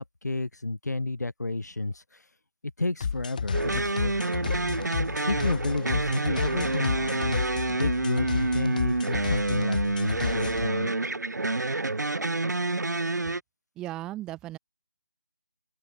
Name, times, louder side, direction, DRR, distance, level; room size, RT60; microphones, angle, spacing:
voice 1, 0.0-2.0 2.8-4.3 5.3-7.4 7.7-10.9, left 2 dB, 70° left, 3.3 m, -31 dB
sound 1, 3.0-10.7, left 6 dB, 30° left, 0.5 m, -32 dB
sound 2, 3.5-13.4, right 2 dB, 75° right, 0.8 m, -28 dB
voice 2, 13.8-14.6, right 15 dB, 5° right, 0.7 m, -36 dB
open air
figure-of-eight pair, 155°, 9 cm